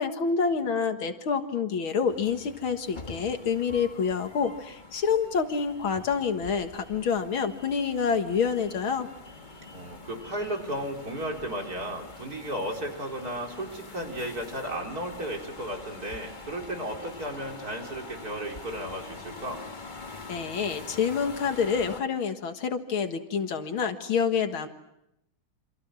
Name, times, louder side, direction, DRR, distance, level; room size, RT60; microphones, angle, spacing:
voice 1, 0.0-9.1 20.3-24.7, left 6 dB, 75° left, 7 dB, 2.4 m, -27 dB
sound 1, 2.1-22.0, left 3 dB, 25° left, 1.5 m, -45 dB
voice 2, 9.7-19.6, right 1 dB, 45° right, 1 dB, 4.7 m, -34 dB
29.0 x 26.5 x 6.2 m, 0.84 s
omnidirectional pair, 2.3 m